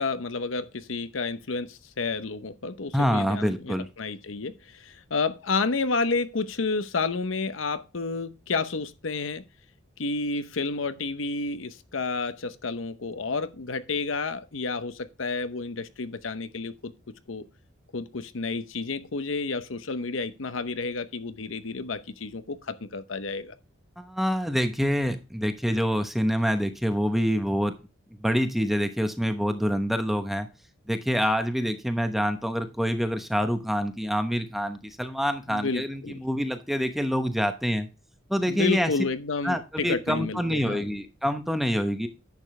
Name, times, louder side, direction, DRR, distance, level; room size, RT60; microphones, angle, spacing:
voice 1, 0.0-9.4 10.0-16.9 17.3-17.4 17.9-23.5 35.5-36.2 38.5-40.8, left 4 dB, 85° left, 0.8 m, -30 dB
voice 2, 2.9-3.9 24.0-27.7 28.2-30.5 30.9-37.9 38.3-38.9 39.4-42.1, equal, ahead, 0.9 m, -26 dB
10.5 x 7.1 x 3.2 m
head